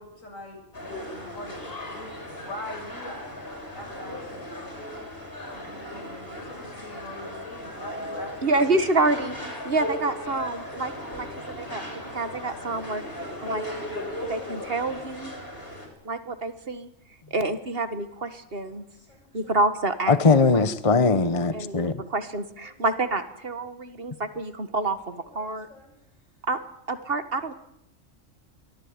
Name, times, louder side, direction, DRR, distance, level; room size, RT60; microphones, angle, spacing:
voice 1, 0.0-3.2 3.7-4.5 5.5-8.7 18.6-19.3 21.5-21.9 22.2-22.8 25.1-25.9, left 1 dB, 85° left, 2 dB, 7.9 m, -43 dB
sound 1, 0.7-15.9, left 1 dB, 45° left, 6.4 m, -37 dB
voice 2, 8.4-9.3 9.6-11.3 11.6-13.0 13.4-13.7 14.3-15.3 16.0-16.9 17.3-18.8 19.3-20.2 20.5-20.6 21.5-25.7 26.5-26.6 26.9-27.5, right 2 dB, 50° right, 10 dB, 1.7 m, -27 dB
voice 3, 20.1-22.0, left 4 dB, 30° left, 12 dB, 1.0 m, -20 dB
23.5 x 17.5 x 9.6 m, 0.78 s
omnidirectional pair, 1.3 m